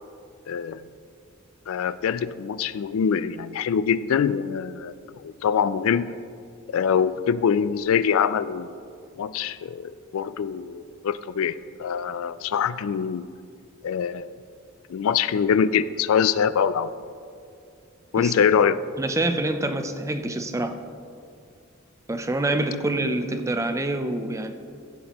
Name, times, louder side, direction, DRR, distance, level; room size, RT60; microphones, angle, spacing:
voice 1, 0.5-0.8 1.7-6.1 6.7-8.8 9.2-13.3 13.8-14.3 14.9-16.9 18.1-18.8, left 7 dB, 75° left, 14 dB, 0.3 m, -24 dB
voice 2, 19.0-20.7 22.1-24.5, right 2 dB, 15° right, 8 dB, 0.5 m, -26 dB
15.0 x 8.4 x 3.0 m, 2.4 s
head